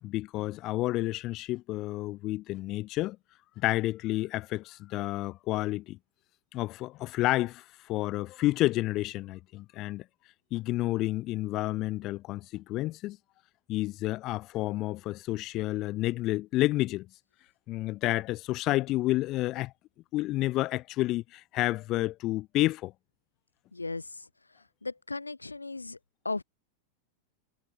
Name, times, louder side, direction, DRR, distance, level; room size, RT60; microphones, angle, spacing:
voice 1, 0.0-3.2 3.6-6.0 6.5-10.0 10.5-13.2 13.7-17.1 17.7-19.7 20.1-22.9, left 17 dB, 35° left, 2.8 m, -30 dB
voice 2, 23.7-24.2 24.8-26.0 26.2-26.4, left 3 dB, 80° left, 1.2 m, -36 dB
figure-of-eight pair, 90°, 0 cm